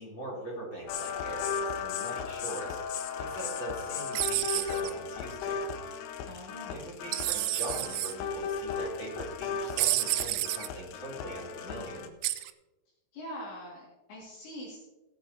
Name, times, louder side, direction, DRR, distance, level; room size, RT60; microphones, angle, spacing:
voice 1, 0.0-2.8 3.1-5.6 6.7-12.0, right 1 dB, 30° left, -4 dB, 3.1 m, -41 dB
sound 1, 0.9-12.1, left 6 dB, 90° left, 3.5 m, -36 dB
sound 2, 4.1-4.9 7.1-8.1 9.8-10.7 12.2-12.5, right 16 dB, 85° right, 2.6 m, -30 dB
voice 2, 6.3-7.0 11.8-12.2 13.1-14.8, equal, 65° left, -5 dB, 4.2 m, -44 dB
18.0 x 9.1 x 2.7 m, 1.1 s
omnidirectional pair, 5.7 m